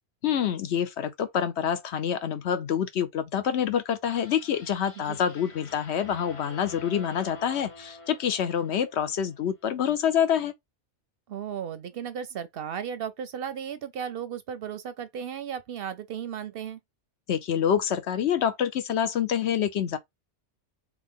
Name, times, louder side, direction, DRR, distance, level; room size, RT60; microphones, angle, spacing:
voice 1, 0.2-10.5 17.3-20.0, left 8 dB, 70° left, 1.0 m, -27 dB
sound 1, 4.0-9.3, left 3 dB, 35° left, 0.7 m, -47 dB
voice 2, 11.3-16.8, right 8 dB, 65° right, 0.7 m, -35 dB
3.5 x 3.1 x 3.6 m
omnidirectional pair, 1.2 m